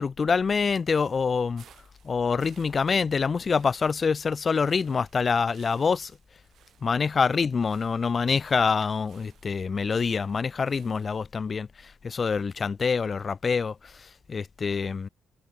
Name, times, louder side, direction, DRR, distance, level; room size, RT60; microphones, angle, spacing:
voice 1, 0.0-1.6 2.0-6.1 6.8-15.1, left 5 dB, 40° left, 0.5 m, -26 dB
sound 1, 0.9-11.2, right 10 dB, 65° right, 3.5 m, -60 dB
cardioid pair, 90°, 0 cm